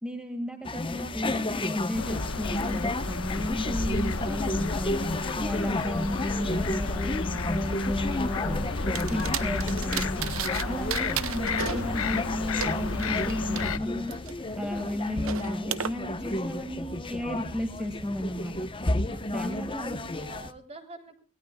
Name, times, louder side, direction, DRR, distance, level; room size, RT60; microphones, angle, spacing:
voice 1, 0.0-5.0 5.4-8.7 9.1-10.2 10.7-14.1 14.6-18.5 19.3-20.0, left 1 dB, 5° right, 4 dB, 2.1 m, -33 dB
sound 1, 0.6-20.5, left 2 dB, 25° left, 1.0 m, -32 dB
sound 2, 1.9-13.8, left 3 dB, 85° left, 1.3 m, -32 dB
sound 3, 8.9-10.6 10.9-13.6 14.1-15.9, right 9 dB, 70° right, 0.8 m, -35 dB
voice 2, 19.1-21.2, right 2 dB, 30° right, 5 dB, 3.5 m, -47 dB
25.0 x 18.5 x 2.4 m, 0.37 s
head